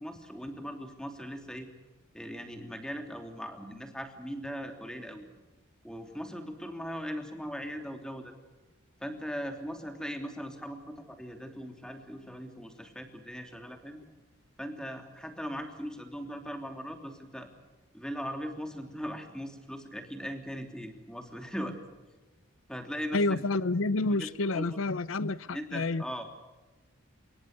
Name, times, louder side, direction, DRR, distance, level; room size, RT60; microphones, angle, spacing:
voice 1, 0.0-1.7 2.1-5.3 5.8-8.3 9.0-14.0 14.6-17.5 17.9-21.8 22.7-23.4 24.2-24.8 25.5-26.3, equal, 5° left, 5 dB, 3.1 m, -39 dB
voice 2, 23.1-26.0, left 2 dB, 75° left, 17 dB, 0.7 m, -29 dB
26.5 x 23.5 x 6.7 m, 1.2 s
head